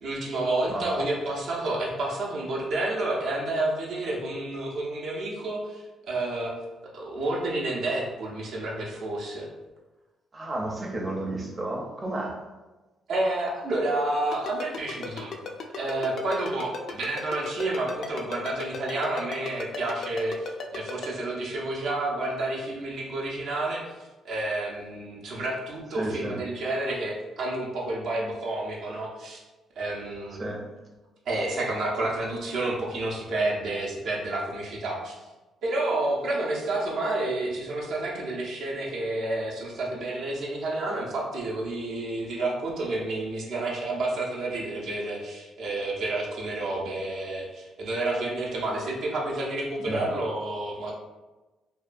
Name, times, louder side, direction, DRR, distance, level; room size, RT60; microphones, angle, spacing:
voice 1, 0.0-6.5 6.9-9.5 13.1-15.3 15.7-24.0 24.2-29.4 29.8-30.4 31.3-35.1 35.6-50.9, right 2 dB, 75° right, -3 dB, 0.6 m, -30 dB
voice 2, 0.7-1.0 10.3-12.3 26.0-26.4 30.4-30.6 49.8-50.1, right 1 dB, 30° right, -2 dB, 0.5 m, -31 dB
Ringtone, 14.3-21.1, left 5 dB, 65° left, 0.3 m, -35 dB
2.7 x 2.2 x 2.5 m, 1.2 s
cardioid pair, 90°, 0 cm